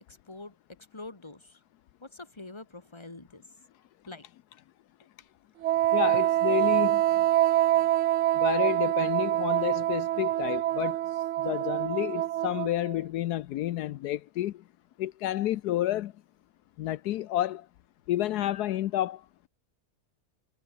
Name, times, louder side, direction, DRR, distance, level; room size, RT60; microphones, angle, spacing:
voice 1, 0.1-1.6 2.0-3.5 4.1-4.3 5.0-5.1 5.8-5.9, left 2 dB, 15° left, 2.2 m, -46 dB
Wind instrument woodwind instrument, 5.6-13.0, right 13 dB, 70° right, 0.7 m, -25 dB
voice 2, 5.9-7.0 8.3-11.0 11.4-14.6 15.0-16.1 16.8-17.7 18.1-19.2, left 13 dB, 80° left, 1.2 m, -30 dB
omnidirectional pair, 1.7 m